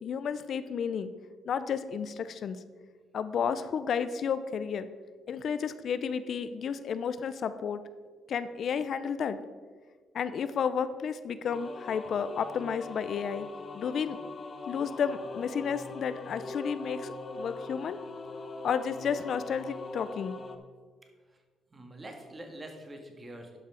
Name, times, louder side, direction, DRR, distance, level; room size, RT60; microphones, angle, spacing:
voice 1, 0.0-1.1 1.5-2.6 3.1-4.9 5.3-7.8 8.3-9.4 10.1-13.5 13.7-14.2 14.7-18.0 18.6-20.4, left 7 dB, 60° left, 12 dB, 0.5 m, -32 dB
sound 1, 11.5-20.6, left 3 dB, 40° left, 0.9 m, -42 dB
voice 2, 21.7-23.6, right 1 dB, 25° right, 4 dB, 1.7 m, -45 dB
11.0 x 5.6 x 4.9 m, 1.5 s
cardioid pair, 90°, 0 cm